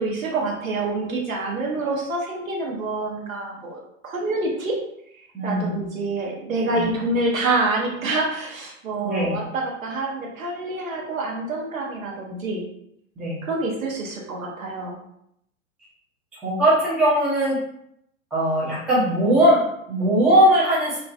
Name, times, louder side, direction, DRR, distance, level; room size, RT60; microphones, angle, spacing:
voice 1, 0.0-4.8 5.4-12.6 13.4-15.0, right 2 dB, 75° right, -1 dB, 0.8 m, -27 dB
voice 2, 5.3-5.8 6.7-6.9 9.0-9.4 13.2-13.4 16.4-17.6 18.3-21.0, equal, ahead, -9 dB, 0.4 m, -20 dB
2.4 x 2.2 x 2.3 m, 0.73 s
figure-of-eight pair, 95°, 41 cm